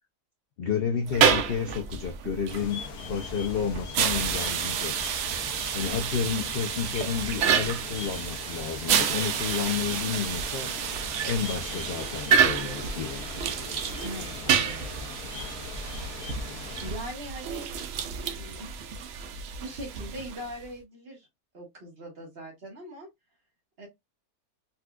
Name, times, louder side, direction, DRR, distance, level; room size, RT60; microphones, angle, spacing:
voice 1, 0.6-5.1 5.7-10.7 11.2-13.2, left 7 dB, 65° left, 0.5 m, -31 dB
sound 1, 1.0-20.6, right 7 dB, 70° right, 0.6 m, -29 dB
sound 2, 2.5-16.9, left 5 dB, 85° left, 1.2 m, -41 dB
voice 2, 14.0-15.1 16.8-18.7 19.6-21.3 21.5-23.1 23.8-23.9, equal, 45° right, 1.3 m, -41 dB
4.0 x 2.4 x 2.3 m
omnidirectional pair, 1.6 m